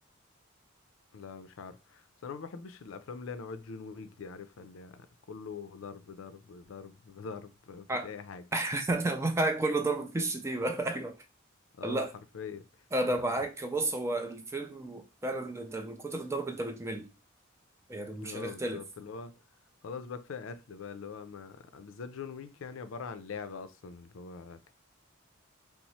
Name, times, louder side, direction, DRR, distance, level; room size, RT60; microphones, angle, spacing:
voice 1, 1.1-8.4 11.7-12.1 12.3-12.8 18.2-19.4 19.8-24.7, left 5 dB, 80° left, 0.4 m, -43 dB
voice 2, 8.5-11.2 11.8-12.1 12.9-17.1 17.9-18.8, right 2 dB, 15° right, 0.4 m, -32 dB
2.9 x 2.0 x 4.0 m
head